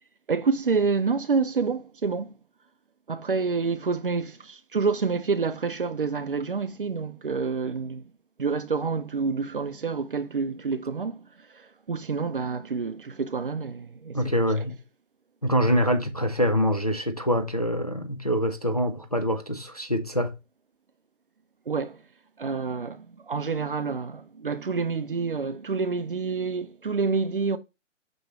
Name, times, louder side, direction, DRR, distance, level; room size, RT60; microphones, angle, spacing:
voice 1, 0.3-2.3 3.1-8.0 8.4-11.2 11.5-14.3 21.7-22.0 22.4-27.6, right 5 dB, 45° right, 0.7 m, -28 dB
voice 2, 14.1-14.8 15.4-20.3, equal, 30° left, 0.4 m, -25 dB
6.2 x 5.2 x 3.0 m
hypercardioid pair, 170°, 38 cm